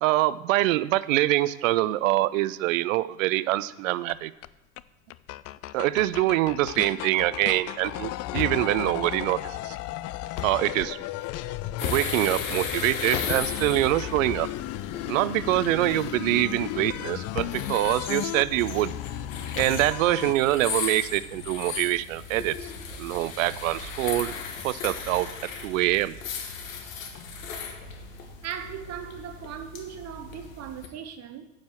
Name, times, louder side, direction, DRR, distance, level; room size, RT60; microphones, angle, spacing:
voice 1, 0.0-4.3 5.7-9.8 10.4-11.0 11.8-14.5 15.1-18.9 19.6-22.7 23.0-24.3 24.6-25.3 25.6-26.2, right 16 dB, 75° right, 0.6 m, -25 dB
sound 1, 4.1-4.2 4.4-4.5 4.8-4.9 5.1-20.3, left 15 dB, 40° left, 0.4 m, -35 dB
sound 2, 8.1-8.8 10.2-10.7 11.2-12.4 12.7-14.0 14.7-15.3 15.5-16.6 17.4-17.6 17.9-18.0 18.4-19.9, left 10 dB, 60° left, 1.0 m, -37 dB
sound 3, 11.8-30.9, left 5 dB, 75° left, 1.5 m, -37 dB
voice 2, 28.4-31.5, right 8 dB, 40° right, 1.0 m, -38 dB
9.4 x 5.0 x 7.6 m
hypercardioid pair, 75°, 40 cm